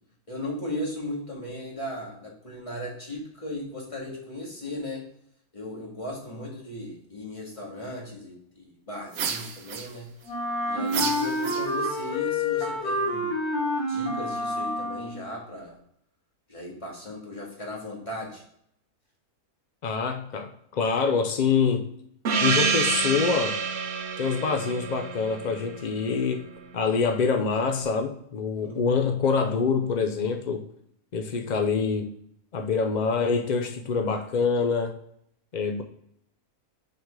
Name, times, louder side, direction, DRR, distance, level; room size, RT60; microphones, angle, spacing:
voice 1, 0.3-5.0 5.5-10.1 10.7-13.3 13.9-15.8 16.5-18.4 28.6-28.8, left 1 dB, 20° left, -3 dB, 2.1 m, -37 dB
sound 1, 9.1-10.3 10.9-12.0, right 6 dB, 75° right, 1.2 m, -32 dB
Wind instrument woodwind instrument, 10.2-15.3, left 1 dB, 85° left, 2.0 m, -28 dB
voice 2, 19.8-21.9 22.4-23.6 24.2-26.5 26.7-30.7 31.1-32.1 32.5-35.0 35.5-35.8, left 5 dB, 70° left, 5 dB, 0.4 m, -25 dB
Gong, 22.2-26.6, right 5 dB, 55° right, 1.0 m, -28 dB
6.1 x 4.9 x 3.6 m, 0.70 s
omnidirectional pair, 1.6 m